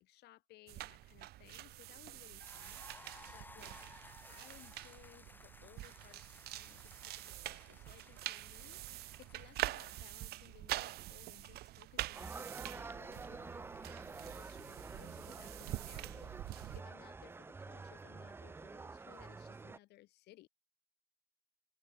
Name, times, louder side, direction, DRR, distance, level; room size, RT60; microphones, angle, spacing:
voice 1, 0.0-3.8 4.3-20.5, left 16 dB, 80° left, 3.8 m, -62 dB
sound 1, 0.7-16.8, right 17 dB, 70° right, 0.6 m, -45 dB
sound 2, 2.4-10.5, left 2 dB, 10° left, 2.0 m, -59 dB
sound 3, 12.1-19.8, right 4 dB, 15° right, 0.3 m, -48 dB
open air
cardioid pair, 110°, 17 cm